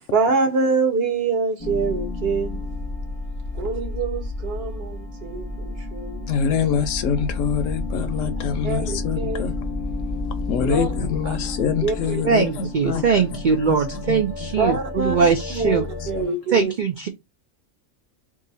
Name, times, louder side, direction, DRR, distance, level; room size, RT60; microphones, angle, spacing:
voice 1, 0.1-2.6 3.5-6.3 8.2-8.3 8.6-9.4 10.6-10.9 11.3-11.4 11.8-12.2 14.6-15.2 15.5-16.7, right 4 dB, 55° right, 1.0 m, -25 dB
sound 1, 1.6-16.2, left 3 dB, 30° left, 0.6 m, -31 dB
voice 2, 6.3-9.5 10.5-13.4 13.7-14.8 15.2-16.4, left 7 dB, 75° left, 1.0 m, -26 dB
voice 3, 12.2-15.9 16.5-17.1, right 5 dB, 80° right, 0.4 m, -21 dB
2.7 x 2.6 x 3.9 m
omnidirectional pair, 1.4 m